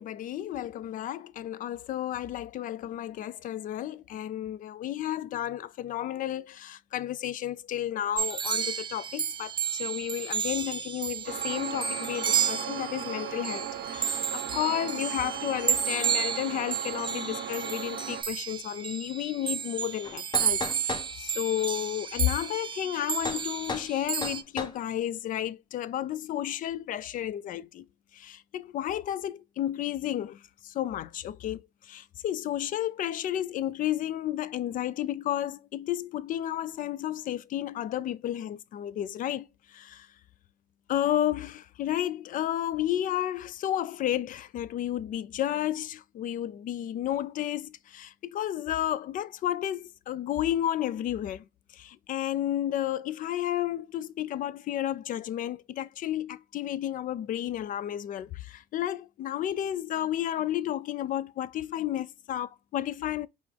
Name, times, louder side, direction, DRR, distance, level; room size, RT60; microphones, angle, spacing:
voice 1, 0.0-27.9 28.1-40.1 40.9-51.5 51.7-63.3, left 12 dB, 55° left, 0.4 m, -32 dB
sound 1, 8.2-24.4, right 8 dB, 30° right, 0.5 m, -32 dB
sound 2, 11.3-18.2, right 8 dB, 75° right, 0.6 m, -37 dB
sound 3, 20.0-21.1 23.2-23.4 23.7-23.9 24.2-24.8, left 3 dB, 25° left, 0.8 m, -34 dB
5.2 x 2.5 x 3.3 m
cardioid pair, 110°, 17 cm